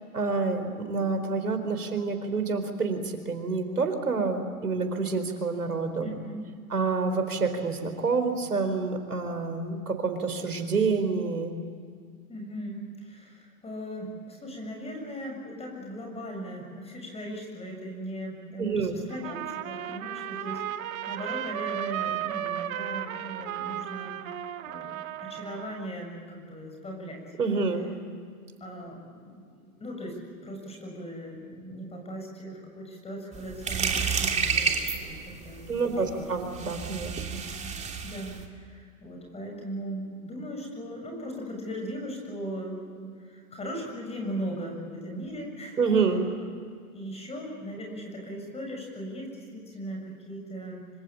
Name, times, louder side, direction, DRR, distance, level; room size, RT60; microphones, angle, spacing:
voice 1, 0.1-6.1 6.7-11.5 18.6-19.0 27.4-27.8 35.7-37.4 45.8-46.2, right 4 dB, 90° right, 7 dB, 4.3 m, -28 dB
voice 2, 6.0-6.5 12.3-24.2 24.6-27.2 28.6-36.3 37.6-37.7 38.0-45.8 46.4-46.5 46.9-50.9, equal, 15° left, 1 dB, 7.2 m, -38 dB
Trumpet, 19.1-25.9, right 11 dB, 65° right, 1.6 m, -34 dB
sound 1, 33.3-38.4, right 6 dB, 15° right, 2.8 m, -30 dB
26.0 x 26.0 x 8.6 m, 2.1 s
hypercardioid pair, 115°, 44 cm